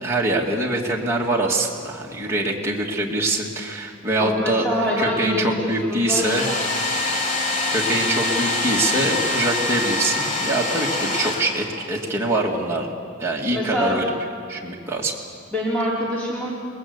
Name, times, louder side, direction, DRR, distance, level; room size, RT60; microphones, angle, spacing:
voice 1, 0.0-6.5 7.7-12.9 13.2-14.1 14.5-15.1, right 2 dB, 10° right, -3 dB, 2.3 m, -24 dB
voice 2, 4.2-6.6 13.5-14.0 15.5-16.5, left 1 dB, 5° left, -7 dB, 4.0 m, -25 dB
Domestic sounds home sounds, 6.1-12.0, left 2 dB, 35° left, 3.9 m, -25 dB
29.5 x 20.0 x 8.2 m, 2.3 s
head